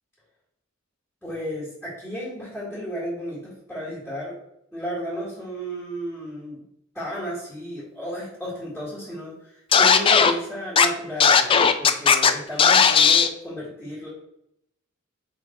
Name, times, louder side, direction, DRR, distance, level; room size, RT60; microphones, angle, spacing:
voice 1, 1.2-4.4 4.7-6.6 6.9-14.1, equal, 5° left, -9 dB, 2.2 m, -33 dB
Scratching (performance technique), 9.7-10.3 10.8-10.9 11.2-12.3 12.6-13.3, left 6 dB, 25° left, 0.3 m, -16 dB
5.2 x 4.0 x 4.5 m, 0.77 s
head